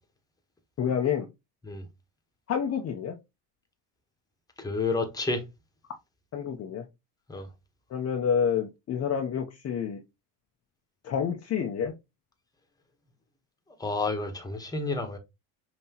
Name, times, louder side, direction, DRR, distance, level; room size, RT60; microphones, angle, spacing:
voice 1, 0.8-1.3 2.5-3.1 6.3-6.8 7.9-10.0 11.0-11.9, left 7 dB, 35° left, 0.6 m, -28 dB
voice 2, 4.6-5.4 7.3-7.5 13.8-15.2, left 3 dB, 10° left, 1.0 m, -30 dB
5.6 x 2.9 x 2.8 m
cardioid pair, 125°, 45 cm